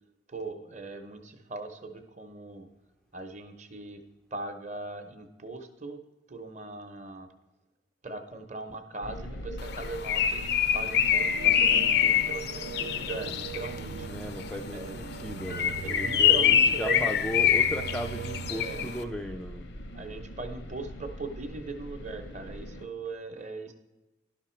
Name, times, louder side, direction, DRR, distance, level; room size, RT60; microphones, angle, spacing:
voice 1, 0.3-2.7 3.1-4.0 4.3-6.0 6.3-7.3 8.0-14.1 14.7-15.1 15.5-17.1 18.5-18.9 19.9-23.7, right 3 dB, 40° right, 7 dB, 0.8 m, -40 dB
sound 1, 9.0-22.9, equal, 80° left, 0.8 m, -42 dB
Bird, 9.7-13.8 15.4-18.9, left 9 dB, 60° left, 0.5 m, -25 dB
sound 2, 11.1-18.9, right 8 dB, 85° right, 0.3 m, -41 dB
voice 2, 14.1-19.6, equal, 5° left, 3 dB, 0.3 m, -36 dB
11.0 x 5.9 x 4.4 m, 1.1 s
head